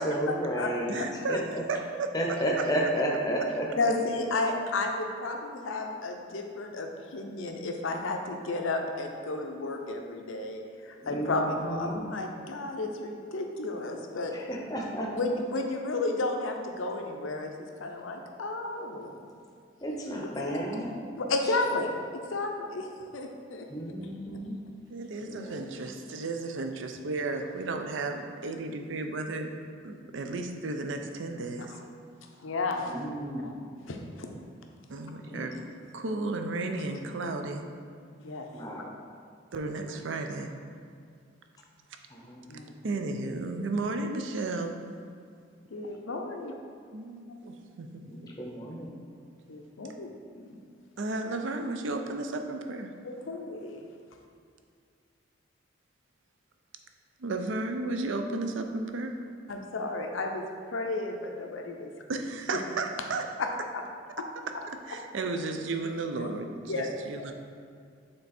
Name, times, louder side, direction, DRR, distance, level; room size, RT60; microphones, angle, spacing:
voice 1, 0.0-1.0 1.3-1.4 2.1-3.7 11.0-12.1 14.3-15.1 19.8-21.1 23.7-24.5 25.2-25.6 32.8-33.6 35.2-35.6 38.5-38.9 42.1-42.6 48.1-49.0, equal, 20° left, -1 dB, 0.7 m, -32 dB
voice 2, 0.9-1.4 1.7-2.7 24.9-29.5 29.8-31.7 34.9-35.6 35.9-37.7 39.5-40.5 42.8-44.8 46.9-48.1 51.0-52.9 57.2-59.2 62.1-63.2 64.8-67.3, right 3 dB, 65° right, 5 dB, 0.5 m, -33 dB
voice 3, 3.8-14.3 15.1-17.5 17.8-19.3 20.2-20.6 21.1-21.9 22.3-22.9 23.1-23.7 31.7-31.8 32.4-32.9 33.4-33.5 33.9-34.3 38.2-38.5 42.5-42.7 45.7-46.5 49.5-50.1 50.3-50.6 53.0-53.9 59.5-60.4 60.7-61.9 63.4-63.8 64.2-64.3 66.7-66.9, left 2 dB, 75° left, 3 dB, 0.6 m, -32 dB
6.7 x 3.4 x 4.1 m, 2.3 s
head